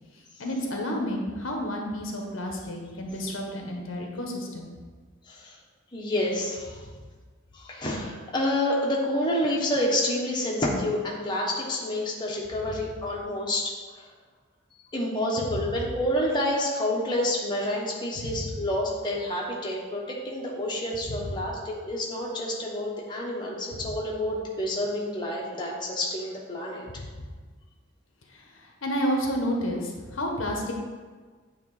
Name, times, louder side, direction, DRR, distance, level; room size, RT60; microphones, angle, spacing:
voice 1, 0.4-4.7 18.2-18.5 21.1-21.3 26.9-27.1 28.3-30.7, equal, 90° left, 1 dB, 1.2 m, -31 dB
voice 2, 5.9-6.8 7.5-14.1 14.9-26.8, left 1 dB, 20° left, -3 dB, 1.1 m, -28 dB
8.8 x 3.3 x 4.8 m, 1.4 s
head